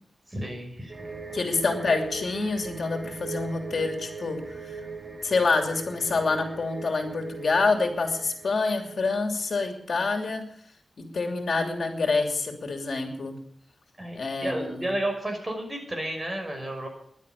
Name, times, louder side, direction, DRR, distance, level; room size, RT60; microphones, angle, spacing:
voice 1, 0.3-1.4 14.0-16.9, right 1 dB, 25° right, 3 dB, 6.1 m, -32 dB
sound 1, 0.9-9.3 9.6-9.7, right 4 dB, 60° right, 4.8 m, -40 dB
voice 2, 1.3-4.4 4.6-4.8 5.2-10.4 11.0-13.4 14.1-14.9, left 3 dB, 70° left, 3 dB, 2.9 m, -27 dB
15.0 x 11.5 x 7.0 m, 0.66 s
wide cardioid pair, 95°, 0 cm